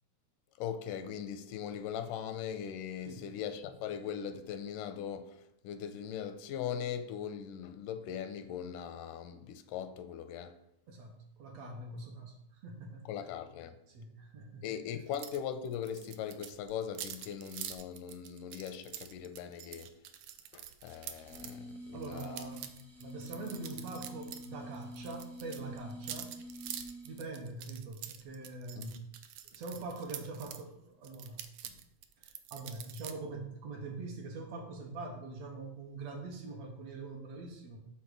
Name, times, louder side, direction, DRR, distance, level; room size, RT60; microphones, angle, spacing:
voice 1, 0.6-10.6 13.1-13.8 14.6-20.0 20.5-22.5 22.8-22.9 28.8-28.9, left 8 dB, 85° left, 2.2 m, -40 dB
voice 2, 10.9-13.1 13.9-14.7 21.9-22.7 23.0-26.3 27.0-29.0 29.5-31.8 32.2-37.8, right 3 dB, 65° right, 2.0 m, -44 dB
sound 1, 15.1-15.4 15.6-21.5 22.0-24.5 24.7-30.6 31.0-33.1, right 11 dB, 85° right, 1.4 m, -46 dB
sound 2, 20.9-27.4, equal, ahead, 0.4 m, -48 dB
7.1 x 4.2 x 6.4 m
omnidirectional pair, 3.6 m